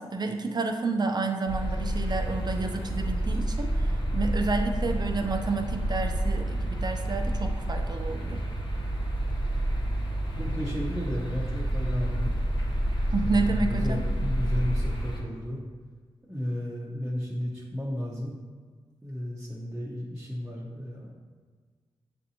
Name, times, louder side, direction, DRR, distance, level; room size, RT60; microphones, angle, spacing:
voice 1, 0.0-8.4 13.1-14.0, right 3 dB, 40° right, 3 dB, 0.5 m, -30 dB
sound 1, 1.5-15.2, right 1 dB, 45° left, 1.1 m, -29 dB
voice 2, 10.4-12.4 13.2-15.6 16.3-18.4 19.0-21.1, equal, 10° right, -7 dB, 0.8 m, -33 dB
6.5 x 2.6 x 2.8 m, 1.5 s
cardioid pair, 55°, 11 cm